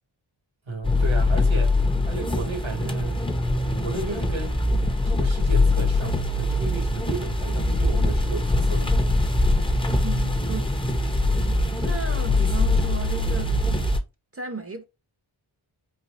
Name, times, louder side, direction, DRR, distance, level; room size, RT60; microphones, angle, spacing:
voice 1, 0.7-1.8 2.0-3.2 3.6-4.6 5.0-9.0 9.5-9.7 11.2-11.5, right 3 dB, 70° right, 1.5 m, -33 dB
sound 1, 0.8-14.0, left 2 dB, 10° left, 0.7 m, -23 dB
voice 2, 10.0-10.8 11.8-13.6 14.3-14.8, right 3 dB, 30° right, 0.8 m, -34 dB
4.2 x 2.6 x 2.5 m
wide cardioid pair, 85°, 48 cm